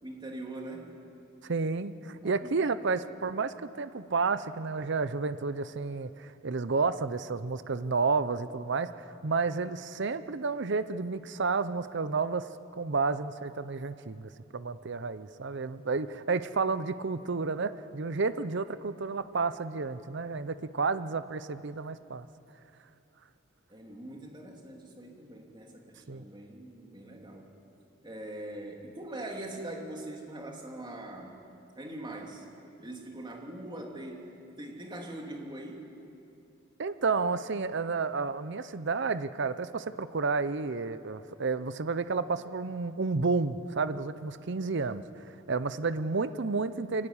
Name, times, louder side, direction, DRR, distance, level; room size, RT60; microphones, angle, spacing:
voice 1, 0.0-0.9 2.0-3.0 23.7-27.5 28.0-31.4 31.8-32.5 32.8-34.3 34.6-35.9, right 1 dB, 25° right, 1 dB, 2.8 m, -42 dB
voice 2, 1.4-12.5 12.7-22.3 26.1-26.2 36.8-47.1, right 4 dB, 60° right, 13 dB, 0.7 m, -31 dB
23.5 x 17.0 x 9.8 m, 2.7 s
head